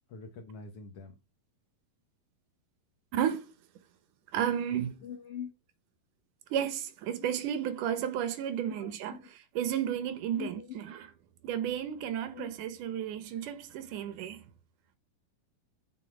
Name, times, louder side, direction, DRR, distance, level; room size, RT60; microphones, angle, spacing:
voice 1, 0.1-1.1 5.0-5.5 7.2-7.3 8.7-9.3 10.3-10.8 12.3-12.5, left 7 dB, 70° left, 1.4 m, -43 dB
voice 2, 3.1-3.5 4.3-5.0 6.5-11.1 11.4-14.4, right 9 dB, 70° right, 2.4 m, -33 dB
8.4 x 5.8 x 4.6 m
omnidirectional pair, 4.1 m